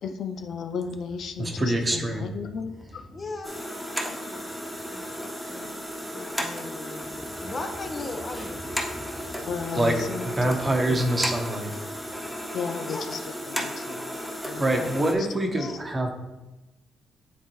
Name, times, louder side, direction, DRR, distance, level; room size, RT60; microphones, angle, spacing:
voice 1, 0.0-3.0 9.4-11.2 12.2-15.3 15.6-15.8, left 6 dB, 65° left, 6 dB, 0.4 m, -35 dB
voice 2, 1.4-2.3 9.0-9.3 9.7-9.9 10.4-11.7 14.6-16.1, right 1 dB, 25° right, 3 dB, 1.1 m, -25 dB
voice 3, 3.1-4.5 4.9-5.7 6.1-9.0 12.9-13.1 15.6-15.8, left 3 dB, 35° left, 4 dB, 1.0 m, -39 dB
sound 1, 3.4-15.1, equal, ahead, 1.2 m, -34 dB
10.0 x 3.7 x 3.1 m, 1.0 s
cardioid pair, 90°, 0 cm